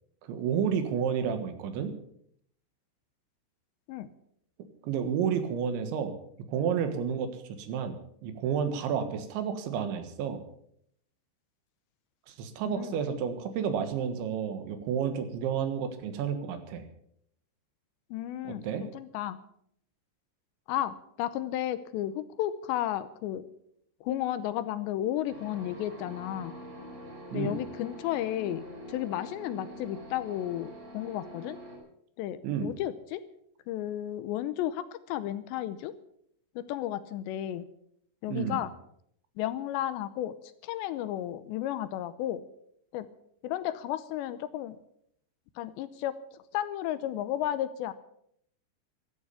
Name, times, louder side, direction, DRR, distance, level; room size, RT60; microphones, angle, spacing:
voice 1, 0.2-2.0 4.8-6.2 6.5-8.0 8.2-10.4 12.3-16.8 18.4-18.9 27.3-27.6 32.4-32.7 38.3-38.6, right 7 dB, 80° right, 9 dB, 3.8 m, -31 dB
voice 2, 12.7-13.0 18.1-19.4 20.7-23.5 24.0-26.5 27.3-31.6 32.2-33.2 33.7-35.9 36.6-37.6 38.2-38.7 39.4-40.3 40.6-42.4 42.9-43.1 43.4-44.8 45.6-46.2 46.5-47.9, left 12 dB, 80° left, 13 dB, 2.8 m, -33 dB
sound 1, 25.3-31.8, equal, 30° right, 7.4 m, -45 dB
14.0 x 13.0 x 7.1 m, 0.69 s
omnidirectional pair, 5.4 m